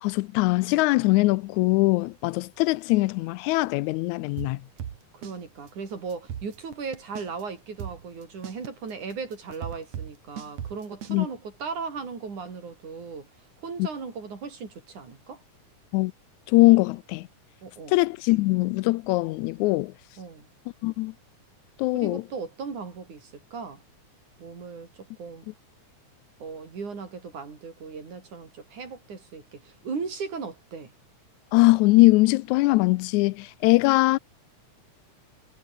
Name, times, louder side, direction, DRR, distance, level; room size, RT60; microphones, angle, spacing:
voice 1, 0.0-4.6 11.1-11.3 13.8-13.9 15.9-16.1 16.5-17.3 17.9-19.9 20.8-21.1 21.8-22.2 31.5-34.2, left 21 dB, 85° left, 1.9 m, -21 dB
sound 1, 4.4-5.4 5.7-5.8 6.1-7.4 7.8-11.2, right 9 dB, 65° right, 3.0 m, -37 dB
voice 2, 5.1-13.3 13.6-15.4 17.6-18.0 20.2-20.5 21.9-23.8 24.4-25.5 26.4-30.9, right 5 dB, 90° right, 6.3 m, -37 dB
omnidirectional pair, 3.4 m